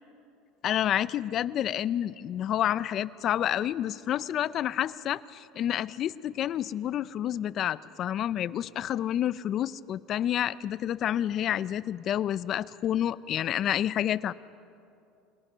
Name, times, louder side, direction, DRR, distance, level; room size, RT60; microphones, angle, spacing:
voice 1, 0.6-14.3, left 11 dB, 45° left, 17 dB, 0.5 m, -29 dB
27.5 x 21.0 x 5.7 m, 2.6 s
supercardioid pair, 130°, 0 cm